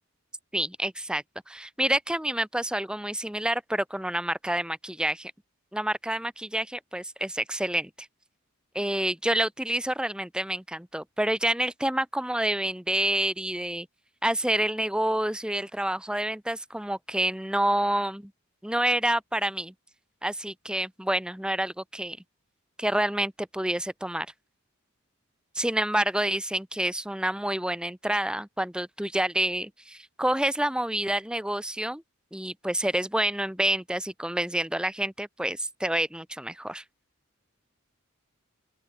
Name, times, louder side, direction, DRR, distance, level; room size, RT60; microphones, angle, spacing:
voice 1, 0.5-5.3 5.7-8.1 8.7-13.9 14.2-18.3 18.6-19.7 20.2-22.2 22.8-24.3 25.5-32.0 32.3-36.8, right 1 dB, 5° right, 0.9 m, -28 dB
open air
head